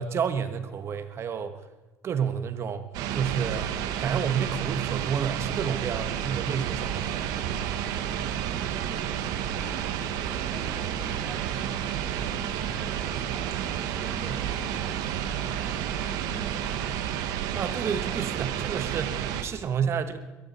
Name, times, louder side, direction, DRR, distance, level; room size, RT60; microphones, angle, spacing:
voice 1, 0.0-1.6 2.0-2.9 3.1-3.7 4.0-7.2 17.5-20.2, right 7 dB, 45° right, 9 dB, 1.3 m, -30 dB
sound 1, 2.9-19.4, right 9 dB, 75° right, 1.3 m, -30 dB
voice 2, 9.6-11.5 11.9-17.3, equal, 15° left, 1 dB, 4.8 m, -47 dB
22.0 x 13.5 x 4.3 m, 1.1 s
cardioid pair, 110°, 6 cm